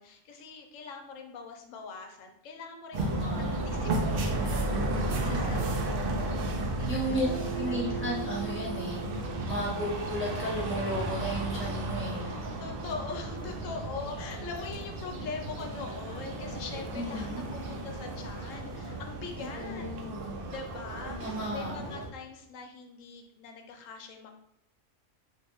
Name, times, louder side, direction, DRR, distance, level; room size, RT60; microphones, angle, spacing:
voice 1, 0.0-3.0 3.4-4.7 5.2-6.4 6.8-7.2 7.5-8.1 9.5-9.8 12.2-19.9 20.2-24.3, left 5 dB, 80° left, 4 dB, 0.9 m, -43 dB
voice 2, 2.9-3.6 5.3-6.1 6.9-7.3 7.5-9.0 9.4-12.2 17.0-17.4 19.5-20.4 21.2-21.8, equal, 15° right, -6 dB, 0.5 m, -34 dB
sound 1, 2.9-22.1, right 2 dB, 65° right, 0.6 m, -34 dB
sound 2, 7.1-15.6, right 9 dB, 60° left, 0.4 m, -44 dB
3.1 x 2.8 x 2.9 m, 0.76 s
omnidirectional pair, 1.3 m